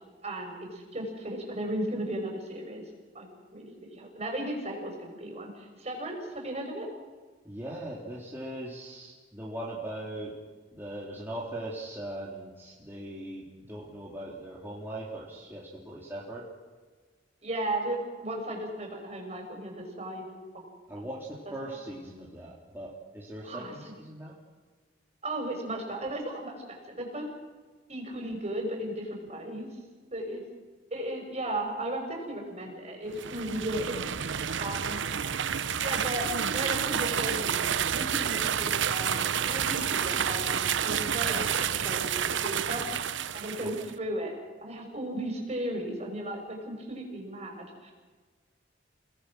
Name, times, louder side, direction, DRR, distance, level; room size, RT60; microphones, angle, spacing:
voice 1, 0.2-2.8 3.1-6.9 17.4-20.3 20.5-20.6 21.0-21.1 21.6-21.8 23.4-23.9 25.2-26.6 26.9-27.3 27.9-29.7 30.1-30.4 30.9-34.2 34.6-35.0 35.8-36.3 36.5-43.0 43.3-44.4 44.6-47.9, right 1 dB, 35° right, 2 dB, 5.6 m, -35 dB
voice 2, 7.5-10.3 10.7-16.4 20.9-24.3 43.6-43.7, right 1 dB, 10° right, -5 dB, 3.5 m, -40 dB
sound 1, 33.1-43.9, right 8 dB, 85° right, 0.7 m, -29 dB
30.0 x 19.0 x 6.2 m, 1.4 s
head